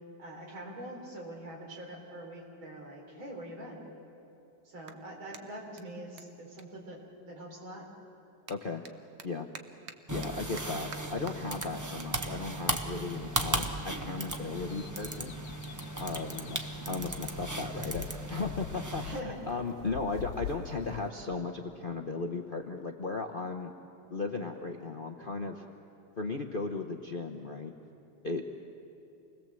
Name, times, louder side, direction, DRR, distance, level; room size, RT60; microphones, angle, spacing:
voice 1, 0.2-3.8 4.7-7.0 7.3-7.9 19.0-19.4, right 1 dB, 75° right, 0 dB, 4.6 m, -43 dB
Clapping, 4.8-7.6 7.9-14.5, right 7 dB, 60° right, 1.5 m, -52 dB
voice 2, 8.5-8.8 9.2-9.5 10.1-15.3 16.0-16.6 16.9-23.7 24.1-25.6 26.2-27.7 28.2-28.4, left 3 dB, 40° left, 4 dB, 0.7 m, -36 dB
sound 1, 10.1-19.2, right 1 dB, 15° right, 0.6 m, -36 dB
sound 2, 14.6-21.1, left 8 dB, 75° left, 1.6 m, -45 dB
27.0 x 20.5 x 7.6 m, 2.8 s
omnidirectional pair, 2.2 m